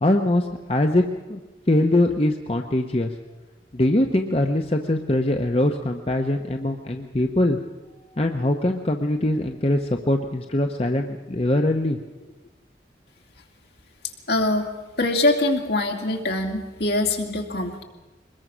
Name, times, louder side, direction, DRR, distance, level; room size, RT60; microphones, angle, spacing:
voice 1, 0.0-1.0 1.3-1.4 1.7-3.1 3.7-7.6 8.2-12.0, left 1 dB, 35° left, 4 dB, 0.9 m, -22 dB
voice 2, 14.3-14.7 15.0-17.8, left 2 dB, 70° left, 2 dB, 2.6 m, -23 dB
23.0 x 20.5 x 6.2 m, 1.2 s
head